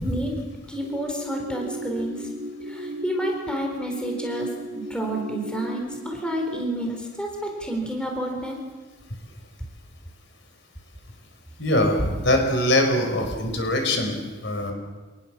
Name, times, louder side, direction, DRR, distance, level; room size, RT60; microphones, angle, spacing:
voice 1, 0.0-2.3 2.7-4.5 4.9-8.6, equal, 5° left, 1 dB, 4.1 m, -30 dB
sound 1, 0.8-6.7, right 1 dB, 40° right, 6.3 m, -35 dB
voice 2, 11.6-14.7, left 1 dB, 60° left, 4 dB, 5.2 m, -22 dB
28.0 x 19.5 x 7.4 m, 1.3 s
head